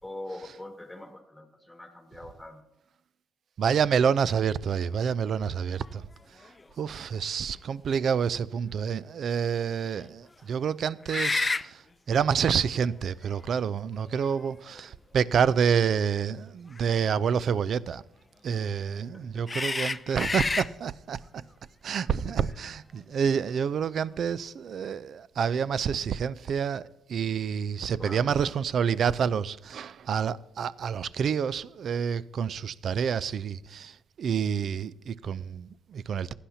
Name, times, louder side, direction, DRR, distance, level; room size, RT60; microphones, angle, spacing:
voice 1, 0.0-2.6 19.0-19.4 22.3-22.6 28.0-28.5, left 1 dB, 5° left, 1.8 m, -43 dB
voice 2, 3.6-6.1 6.3-6.4 6.8-18.0 18.4-21.4 21.8-36.3, right 7 dB, 60° right, 0.4 m, -28 dB
sound 1, 5.8-5.9 6.4-6.6 11.0-11.7 12.9-13.0 14.0-14.8 16.7-16.9 19.5-20.7, left 3 dB, 25° left, 0.3 m, -29 dB
15.5 x 10.0 x 2.7 m
cardioid pair, 85°, 0 cm